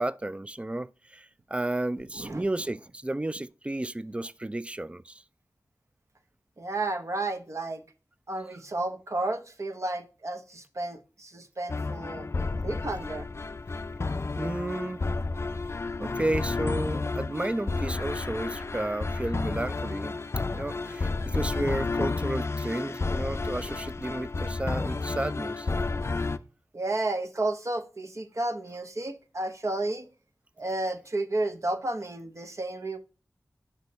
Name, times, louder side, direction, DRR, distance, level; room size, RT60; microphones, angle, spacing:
voice 1, 0.0-5.2 14.4-15.0 16.0-20.2 20.5-25.7, right 1 dB, 20° right, 0.3 m, -32 dB
voice 2, 6.6-7.8 8.3-12.3 12.6-13.3 26.7-30.1 30.6-33.0, right 2 dB, 55° right, 0.9 m, -32 dB
sound 1, 11.7-26.4, left 3 dB, 45° left, 0.4 m, -31 dB
6.3 x 5.3 x 4.0 m
wide cardioid pair, 75°, 6 cm